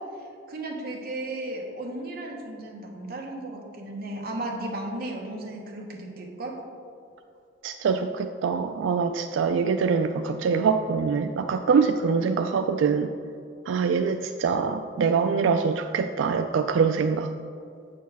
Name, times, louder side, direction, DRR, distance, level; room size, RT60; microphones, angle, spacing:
voice 1, 0.0-6.6, right 1 dB, 50° right, 0 dB, 1.1 m, -35 dB
voice 2, 7.6-13.1 13.7-17.3, right 5 dB, 90° right, 7 dB, 0.3 m, -24 dB
8.3 x 6.5 x 3.5 m, 2.5 s
head